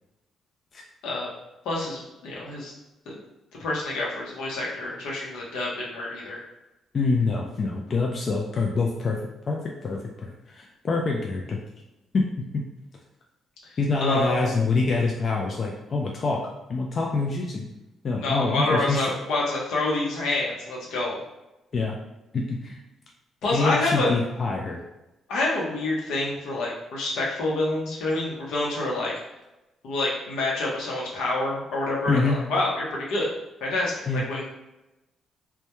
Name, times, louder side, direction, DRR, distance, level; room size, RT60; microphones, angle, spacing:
voice 1, 1.6-2.7 3.6-6.4 14.0-14.6 18.2-21.2 23.4-24.1 25.3-29.1 29.8-33.3 33.6-34.5, left 2 dB, 85° left, -4 dB, 0.7 m, -27 dB
voice 2, 6.9-9.2 9.5-11.6 12.1-12.2 12.5-12.6 13.8-16.4 16.7-17.7 18.0-19.1 21.7-22.0 22.3-22.8 23.5-24.8 32.1-32.4 34.1-34.2, left 3 dB, 45° left, -1 dB, 0.3 m, -25 dB
2.1 x 2.1 x 2.9 m, 0.97 s
cardioid pair, 90°, 0 cm